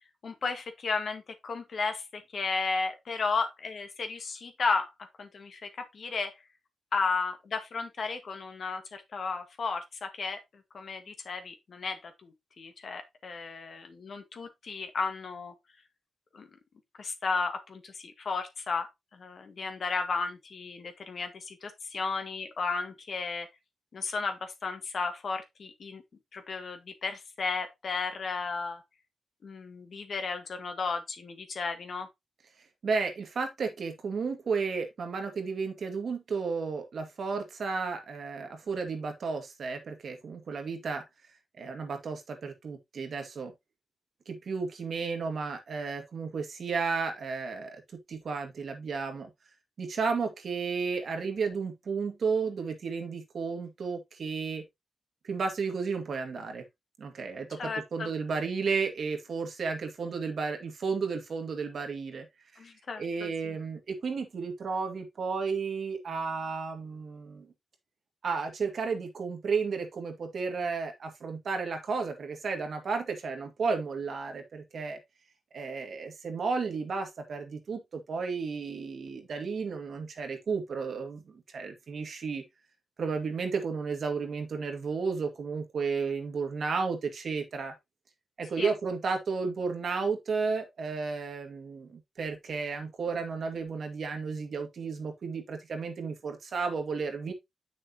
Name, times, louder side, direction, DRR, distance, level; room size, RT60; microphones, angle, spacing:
voice 1, 0.2-4.9 5.2-6.3 6.9-10.4 10.7-15.5 16.3-16.5 17.0-23.5 23.9-26.0 26.3-28.8 29.4-32.1 57.6-58.1 62.6-63.5 88.6-88.7, left 4 dB, 65° left, 1.6 m, -34 dB
voice 2, 32.8-41.0 41.6-43.5 44.3-49.3 49.8-54.6 55.2-56.6 57.0-62.3 62.5-62.7 63.0-67.5 68.2-75.0 75.5-82.4 83.0-87.7 88.4-97.3, right 5 dB, 70° right, 2.0 m, -33 dB
7.7 x 6.2 x 2.9 m
cardioid pair, 70°, 0 cm